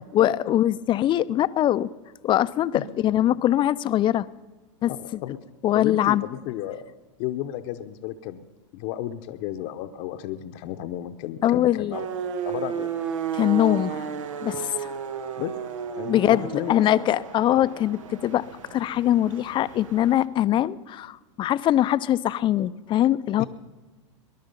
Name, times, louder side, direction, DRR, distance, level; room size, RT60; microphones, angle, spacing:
voice 1, 0.1-1.9 2.2-4.3 4.8-5.2 5.6-6.2 11.4-12.0 13.3-14.1 14.4-14.9 16.1-18.4 18.7-23.4, left 12 dB, 30° left, 15 dB, 0.5 m, -22 dB
voice 2, 4.9-5.4 5.7-6.8 7.2-8.4 8.7-12.1 12.4-12.9 15.4-15.5 15.9-16.8 23.4-23.5, left 13 dB, 50° left, 7 dB, 0.9 m, -33 dB
sound 1, 11.9-20.2, right 7 dB, 80° right, 1.2 m, -33 dB
20.0 x 11.0 x 5.4 m, 1.3 s
hypercardioid pair, 110°, 16 cm